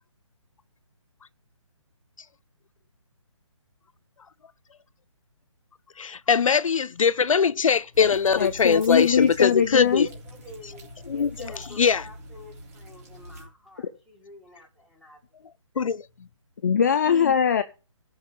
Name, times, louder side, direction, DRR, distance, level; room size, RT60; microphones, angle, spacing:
voice 1, 6.0-10.1 11.1-12.0 15.8-16.0, left 6 dB, 80° left, 0.6 m, -22 dB
sound 1, 7.9-13.5, equal, 30° right, 3.3 m, -44 dB
voice 2, 8.4-10.1 16.6-17.6, left 7 dB, 35° left, 0.6 m, -21 dB
voice 3, 9.7-15.2, right 2 dB, ahead, 2.0 m, -45 dB
14.0 x 5.5 x 7.3 m
hypercardioid pair, 165°, 17 cm